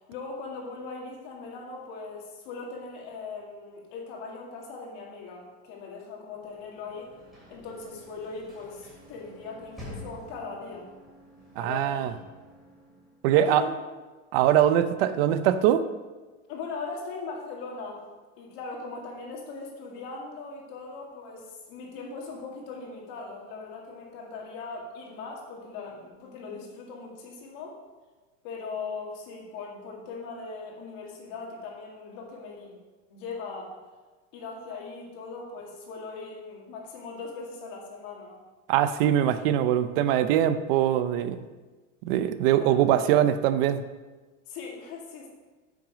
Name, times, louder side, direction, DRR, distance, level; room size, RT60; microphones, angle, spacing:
voice 1, 0.1-7.1 7.5-10.9 11.6-12.1 13.3-13.7 16.5-18.0 18.4-27.8 28.4-32.8 33.1-33.8 34.3-38.4 42.5-42.9 44.5-45.3, left 4 dB, 50° left, -1 dB, 2.2 m, -39 dB
Sliding door / Slam, 6.4-13.4, left 1 dB, ahead, 2.9 m, -49 dB
voice 2, 11.6-12.1 13.2-13.6 14.3-15.8 38.7-41.4 42.0-43.8, right 11 dB, 55° right, 12 dB, 0.6 m, -22 dB
8.8 x 6.3 x 5.0 m, 1.3 s
supercardioid pair, 175°, 35 cm